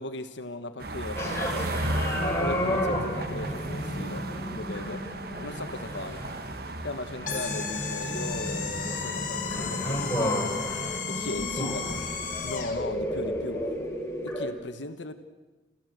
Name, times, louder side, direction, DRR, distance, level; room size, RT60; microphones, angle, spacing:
voice 1, 0.0-1.6 2.3-5.0 5.4-6.2 6.8-10.5 11.1-12.0 12.4-13.6 14.2-15.1, left 2 dB, 80° left, 7 dB, 1.3 m, -38 dB
sound 1, 0.8-11.0, right 2 dB, 55° right, 1.1 m, -36 dB
sound 2, 1.2-14.5, equal, 15° left, 3.9 m, -32 dB
sound 3, 7.3-12.8, left 6 dB, 45° left, 2.5 m, -34 dB
28.5 x 14.5 x 8.0 m, 1.2 s
head